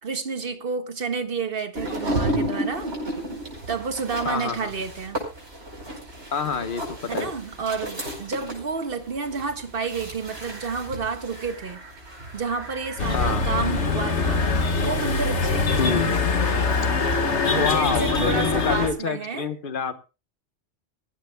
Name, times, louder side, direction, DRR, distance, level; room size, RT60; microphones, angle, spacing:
voice 1, 0.0-3.0 3.7-5.2 7.1-11.8 12.3-14.5 14.8-16.1 17.5-19.5, right 5 dB, 55° right, 7 dB, 1.7 m, -30 dB
sound 1, 1.8-14.6, right 1 dB, 90° right, 5.3 m, -33 dB
voice 2, 4.2-4.7 6.3-7.3 13.1-13.4 15.8-16.1 17.6-19.9, left 6 dB, 50° left, 10 dB, 1.3 m, -27 dB
sound 2, 13.0-18.9, left 4 dB, 80° left, 1.8 m, -23 dB
22.5 x 14.5 x 2.3 m, 0.29 s
omnidirectional pair, 1.1 m